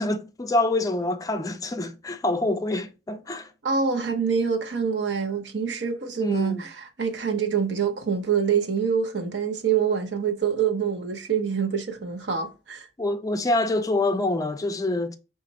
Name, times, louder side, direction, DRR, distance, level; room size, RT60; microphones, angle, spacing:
voice 1, 0.0-3.5 6.2-6.6 13.0-15.1, left 2 dB, 20° left, 0.4 m, -26 dB
voice 2, 3.6-12.9, right 6 dB, 80° right, 0.9 m, -25 dB
5.0 x 2.5 x 4.1 m
head